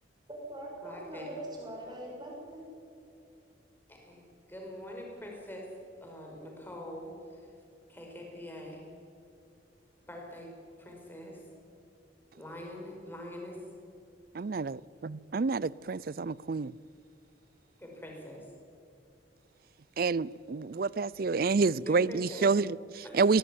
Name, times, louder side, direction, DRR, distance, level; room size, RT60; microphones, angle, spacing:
voice 1, 0.3-2.6, right 1 dB, 20° right, 6.8 m, -42 dB
voice 2, 0.8-1.3 3.9-5.7 6.0-7.5 7.9-8.9 10.1-10.5 10.8-11.5 12.4-13.7 17.8-18.5 21.2-21.4 21.8-22.5 23.0-23.4, left 1 dB, 10° left, 5.0 m, -44 dB
voice 3, 14.3-16.7 20.0-23.4, right 4 dB, 50° right, 0.4 m, -28 dB
20.5 x 19.0 x 9.8 m
head